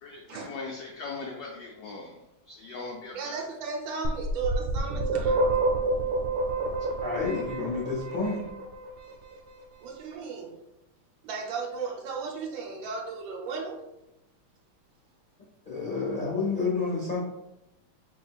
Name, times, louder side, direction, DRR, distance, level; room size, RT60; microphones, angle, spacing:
voice 1, 0.0-2.2 2.5-3.4 6.8-6.9, left 3 dB, 85° left, -1 dB, 0.8 m, -40 dB
voice 2, 3.1-5.5 9.8-10.6 11.2-13.8, right 5 dB, 70° right, 0 dB, 1.4 m, -35 dB
sound 1, 4.0-8.9, right 2 dB, 90° right, 1.6 m, -28 dB
voice 3, 7.0-8.4 15.7-17.2, left 4 dB, 45° left, -6 dB, 0.6 m, -29 dB
4.6 x 3.5 x 2.3 m, 0.92 s
omnidirectional pair, 2.3 m